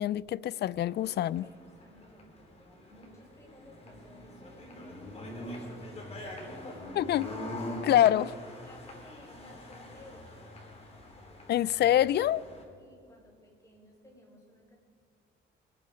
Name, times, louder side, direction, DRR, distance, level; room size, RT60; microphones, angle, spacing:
voice 1, 0.0-1.4 7.0-7.3 7.8-8.3 11.5-12.4, left 12 dB, 60° left, 0.4 m, -25 dB
sound 1, 0.9-12.6, left 1 dB, 30° left, 4.0 m, -43 dB
voice 2, 1.4-7.4 8.2-10.3 12.8-14.8, left 1 dB, 15° left, 4.6 m, -56 dB
24.5 x 9.4 x 5.1 m
cardioid pair, 90°, 20 cm